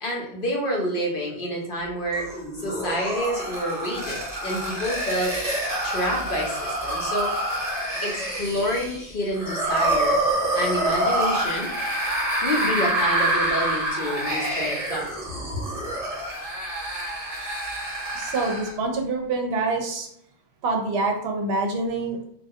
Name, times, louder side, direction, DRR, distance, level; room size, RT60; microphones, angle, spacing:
voice 1, 0.0-2.3 2.6-5.4 5.8-7.3 8.0-10.2 10.5-11.7 12.4-15.1, equal, 60° left, -2 dB, 0.7 m, -28 dB
sound 1, 2.1-18.8, right 1 dB, 40° right, 0.9 m, -27 dB
voice 2, 18.1-20.1 20.6-22.2, right 3 dB, 70° right, 2 dB, 0.8 m, -26 dB
2.3 x 2.1 x 2.7 m, 0.69 s
omnidirectional pair, 1.1 m